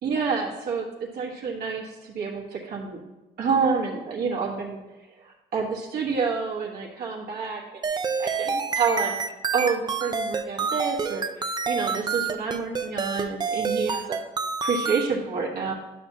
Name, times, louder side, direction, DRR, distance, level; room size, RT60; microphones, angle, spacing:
voice 1, 0.0-3.0 3.4-4.8 5.2-7.6 7.9-9.2 9.5-14.2 14.6-15.7, right 5 dB, 70° right, -3 dB, 1.4 m, -28 dB
sound 1, 7.8-15.1, right 5 dB, 25° right, 0.5 m, -28 dB
11.0 x 5.8 x 2.8 m, 1.1 s
cardioid pair, 110°, 17 cm